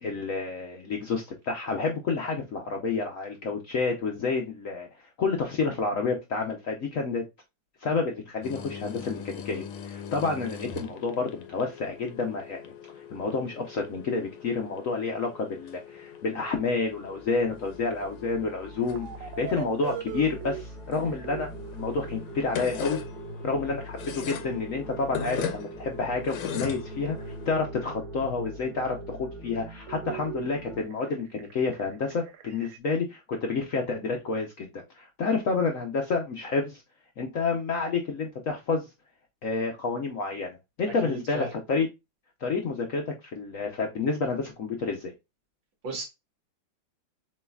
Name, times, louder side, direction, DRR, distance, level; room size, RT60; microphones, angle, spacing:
voice 1, 0.0-4.9 5.2-7.2 7.8-12.7 13.1-23.0 23.4-36.8 37.2-38.9 39.4-41.9 42.4-45.1, left 4 dB, 65° left, 0.8 m, -29 dB
sound 1, 8.4-27.6, left 7 dB, 85° left, 1.6 m, -41 dB
sound 2, 17.0-30.8, left 1 dB, ahead, 0.5 m, -44 dB
sound 3, 18.9-20.6 21.1-32.8, right 9 dB, 85° right, 1.4 m, -42 dB
voice 2, 41.0-41.5 45.8-46.0, right 3 dB, 65° right, 2.4 m, -34 dB
7.3 x 3.1 x 2.3 m
omnidirectional pair, 2.2 m